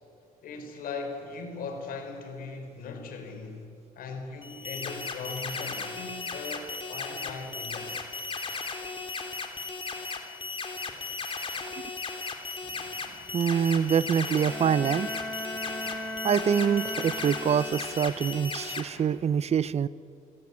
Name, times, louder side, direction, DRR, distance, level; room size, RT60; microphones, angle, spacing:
voice 1, 0.4-3.7 4.0-8.1, left 4 dB, 70° left, 5 dB, 4.7 m, -39 dB
sound 1, 4.4-18.8, left 4 dB, 35° left, 3.3 m, -36 dB
voice 2, 13.3-15.1 16.2-19.9, right 7 dB, 45° right, 19 dB, 0.7 m, -25 dB
Bowed string instrument, 14.0-18.1, left 1 dB, 5° left, 7.5 m, -38 dB
28.0 x 16.5 x 9.6 m, 2.5 s
cardioid pair, 85°, 15 cm